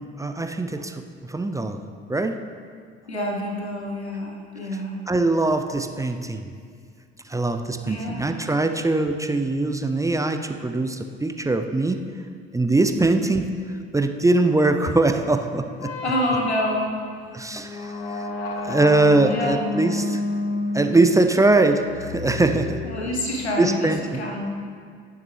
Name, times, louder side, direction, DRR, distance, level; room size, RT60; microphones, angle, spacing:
voice 1, 0.0-1.8 2.1-2.4 5.1-6.5 7.3-12.0 12.5-13.4 13.9-15.9 17.3-18.3 18.6-20.2 20.7-22.8 23.6-24.2, right 2 dB, 10° right, 6 dB, 0.6 m, -22 dB
voice 2, 3.1-5.0 6.3-6.4 7.8-8.5 16.0-17.0 19.2-19.9 22.8-24.5, left 1 dB, 90° left, 1 dB, 1.3 m, -28 dB
sound 1, 15.8-23.6, left 2 dB, 65° left, 1.3 m, -31 dB
16.0 x 7.2 x 3.4 m, 2.1 s
figure-of-eight pair, 55°, 32 cm